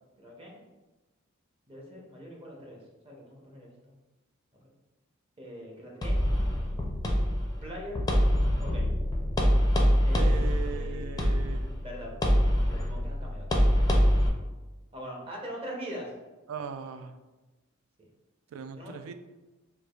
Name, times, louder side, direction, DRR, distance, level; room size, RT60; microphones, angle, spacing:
voice 1, 0.2-0.6 1.7-2.8 3.0-3.9 5.4-6.3 7.6-8.1 8.6-8.9 10.0-10.4 10.7-11.3 11.8-12.4 12.7-13.7 14.9-16.1 18.0-18.1 18.8-18.9, equal, 30° right, -1 dB, 0.7 m, -42 dB
sound 1, 6.0-14.3, equal, 20° left, 0.4 m, -25 dB
voice 2, 10.1-11.7 16.5-17.2 18.5-19.1, right 6 dB, 85° right, 10 dB, 0.3 m, -39 dB
4.5 x 2.4 x 2.3 m, 1.1 s
head